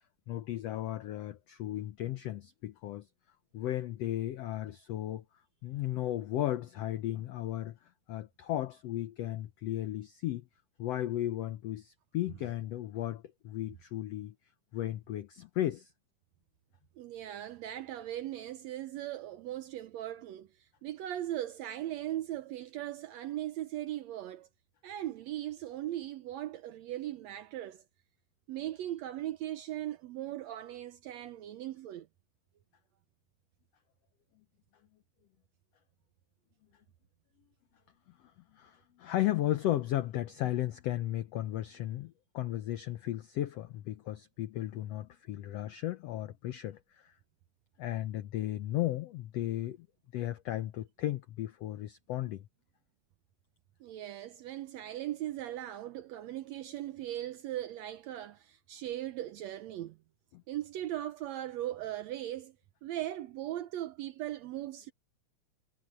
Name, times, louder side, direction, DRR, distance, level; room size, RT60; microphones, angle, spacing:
voice 1, 0.3-3.0 3.5-5.2 5.6-7.8 8.1-10.4 10.8-14.3 14.7-15.9 38.5-47.1 47.8-49.8 50.1-52.4 60.3-60.4, left 13 dB, 80° left, 1.4 m, -35 dB
voice 2, 17.0-24.5 24.8-27.8 28.5-32.1 53.8-60.0 60.5-62.6 62.8-64.9, right 13 dB, 80° right, 1.6 m, -39 dB
omnidirectional pair, 3.8 m